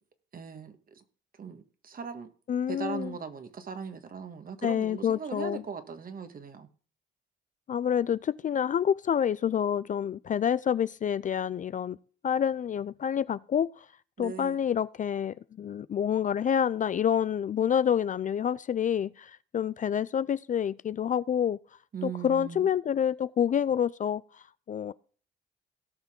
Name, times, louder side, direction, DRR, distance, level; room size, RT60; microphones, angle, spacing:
voice 1, 0.3-0.7 1.4-2.3 2.7-6.7 14.2-14.6 21.9-22.7, right 6 dB, 45° right, 1.6 m, -39 dB
voice 2, 2.5-3.2 4.6-5.6 7.7-12.0 12.2-13.9 14.2-21.6 22.0-24.9, left 8 dB, 40° left, 0.4 m, -28 dB
17.5 x 5.9 x 3.7 m
cardioid pair, 90°, 20 cm